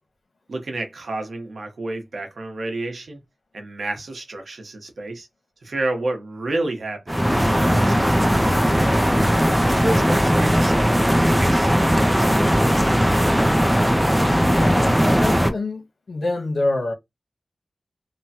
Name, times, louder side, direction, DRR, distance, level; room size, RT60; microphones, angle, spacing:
voice 1, 0.5-3.2 3.5-5.3 5.6-7.2 7.6-9.1 9.6-11.7, right 2 dB, 85° right, 0.9 m, -31 dB
sound 1, 7.1-15.5, equal, 5° right, 0.5 m, -18 dB
voice 2, 14.4-16.9, left 2 dB, 80° left, 1.0 m, -26 dB
3.0 x 2.1 x 2.8 m
wide cardioid pair, 65°, 0 cm